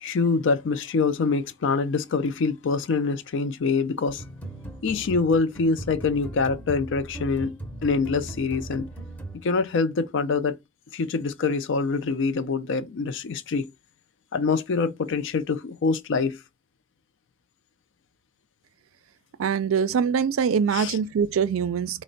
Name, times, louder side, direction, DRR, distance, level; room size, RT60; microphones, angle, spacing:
voice 1, 0.0-4.2 4.8-8.9 9.4-10.6 10.9-13.7 14.3-16.4 20.7-21.0, left 4 dB, 60° left, 0.4 m, -25 dB
sound 1, 4.1-9.8, right 2 dB, 10° left, 0.6 m, -38 dB
voice 2, 19.4-22.0, right 6 dB, 80° right, 0.4 m, -23 dB
4.2 x 2.1 x 3.8 m
head